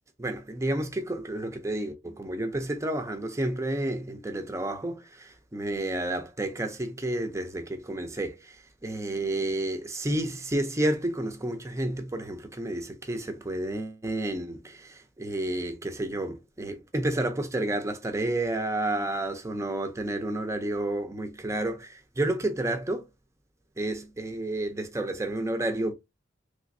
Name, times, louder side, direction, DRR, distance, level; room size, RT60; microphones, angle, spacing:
voice 1, 0.2-23.1 23.8-25.9, right 1 dB, 15° right, 0.6 m, -30 dB
3.3 x 3.0 x 2.6 m
head